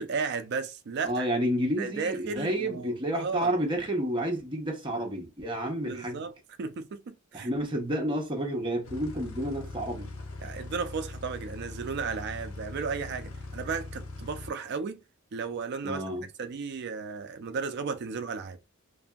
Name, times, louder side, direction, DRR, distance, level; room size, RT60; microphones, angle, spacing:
voice 1, 0.0-1.3 1.8-3.5 5.8-6.3 6.6-7.5 10.4-15.0 15.3-16.0 16.4-18.6, right 5 dB, 55° right, 0.4 m, -34 dB
voice 2, 1.0-6.2 7.3-10.1 15.8-16.2, right 1 dB, 25° right, 0.7 m, -30 dB
sound 1, 8.8-14.5, left 2 dB, 80° left, 0.8 m, -41 dB
2.6 x 2.6 x 2.2 m
head